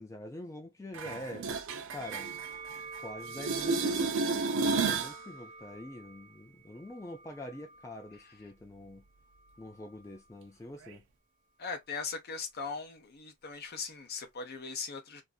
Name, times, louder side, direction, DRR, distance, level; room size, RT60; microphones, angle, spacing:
voice 1, 0.0-1.5 1.9-2.3 3.0-9.0 9.6-11.0, left 1 dB, 15° left, 0.3 m, -45 dB
sound 1, 0.9-3.0 3.3-5.2 10.9-11.0, right 4 dB, 65° right, 0.5 m, -32 dB
Musical instrument, 2.0-8.4 9.3-10.3, right 5 dB, 40° right, 0.9 m, -49 dB
voice 2, 11.6-15.2, left 5 dB, 50° left, 0.7 m, -39 dB
2.5 x 2.5 x 2.3 m
head